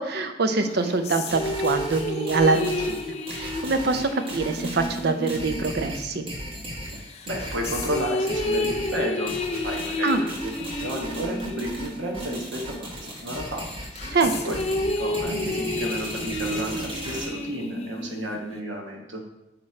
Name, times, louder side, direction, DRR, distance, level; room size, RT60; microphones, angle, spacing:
voice 1, 0.0-3.0 3.3-6.3 10.0-10.2 14.1-14.6, right 3 dB, 55° right, 7 dB, 0.6 m, -24 dB
sound 1, 0.6-6.6 7.1-13.1 13.5-18.6, left 2 dB, 35° left, 0.5 m, -31 dB
sound 2, 1.3-17.2, equal, 30° right, 1.4 m, -36 dB
voice 2, 7.3-9.3 9.6-13.6 14.4-19.2, right 1 dB, 80° right, 0 dB, 1.1 m, -32 dB
8.5 x 3.1 x 4.3 m, 0.92 s
head